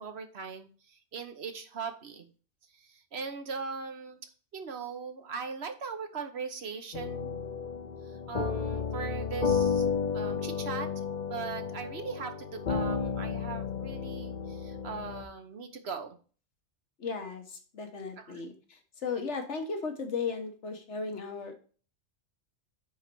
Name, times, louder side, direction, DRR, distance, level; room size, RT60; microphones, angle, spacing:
voice 1, 0.0-2.3 2.7-4.2 4.5-7.4 8.1-9.9 10.1-16.2 18.2-18.4, right 5 dB, 60° right, 7 dB, 1.2 m, -40 dB
sound 1, 6.9-15.2, left 6 dB, 45° left, 0.7 m, -32 dB
voice 2, 17.0-21.5, left 5 dB, 70° left, 5 dB, 1.5 m, -36 dB
9.1 x 4.0 x 4.5 m, 0.39 s
omnidirectional pair, 1.2 m